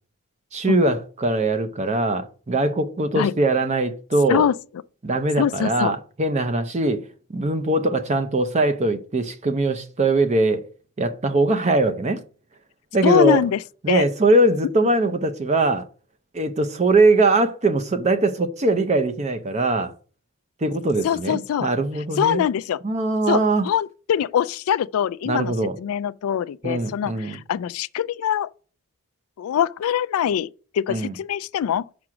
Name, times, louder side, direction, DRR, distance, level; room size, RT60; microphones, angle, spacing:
voice 1, 0.5-4.5 5.0-10.6 11.0-12.2 12.9-13.4 13.8-15.9 16.3-19.9 20.6-22.4 22.8-23.7 25.3-25.8 26.6-27.4 30.9-31.1, right 2 dB, 30° right, 0.6 m, -21 dB
voice 2, 5.4-5.9 13.0-13.6 13.9-14.0 21.0-21.7 22.2-22.8 23.3-28.5 29.4-30.5 30.7-31.9, left 9 dB, 75° left, 0.3 m, -23 dB
6.0 x 4.8 x 6.0 m
head